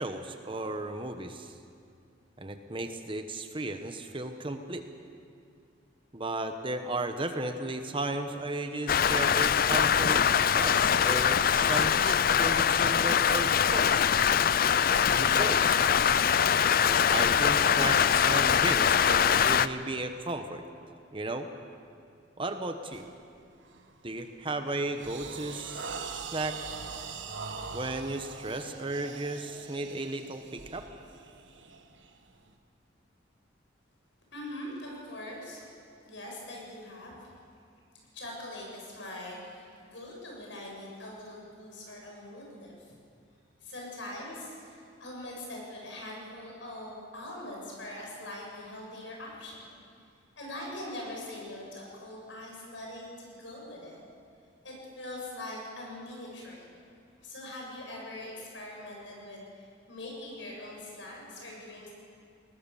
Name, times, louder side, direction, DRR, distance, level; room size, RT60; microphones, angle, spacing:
voice 1, 0.0-1.5 2.4-4.9 6.1-10.2 10.5-14.1 15.1-15.8 16.8-20.6 21.1-21.5 22.4-23.0 24.0-26.0 26.3-26.6 27.7-30.9, right 2 dB, 25° right, 7 dB, 1.1 m, -35 dB
Rain, 8.9-19.7, left 8 dB, 50° left, 0.4 m, -23 dB
sound 1, 22.9-23.2 23.6-23.9 24.4-32.5, right 5 dB, 75° right, 1.4 m, -42 dB
voice 2, 34.3-35.7 36.0-37.2 38.1-42.9 43.6-49.8 50.4-54.0 54.6-56.7 57.2-61.9, left 1 dB, 75° left, -2 dB, 7.0 m, -42 dB
21.0 x 19.5 x 7.0 m, 2.4 s
head